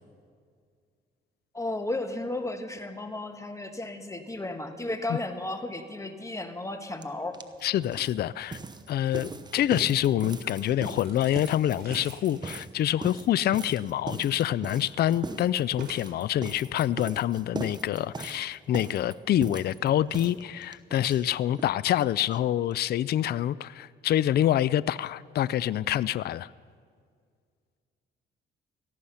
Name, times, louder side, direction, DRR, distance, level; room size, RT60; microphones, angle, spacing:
voice 1, 1.5-7.4, left 2 dB, 15° left, 7 dB, 1.5 m, -34 dB
sound 1, 7.0-7.1 7.3-21.7 22.0-22.1 22.3-22.4 22.7-22.8, right 3 dB, 20° right, 0.9 m, -40 dB
voice 2, 7.6-8.6 8.9-26.5, left 12 dB, 55° left, 20 dB, 0.4 m, -26 dB
sound 2, 11.0-16.4, right 5 dB, 50° right, 3.8 m, -51 dB
18.0 x 14.0 x 5.7 m, 2.1 s
cardioid pair, 90°, 20 cm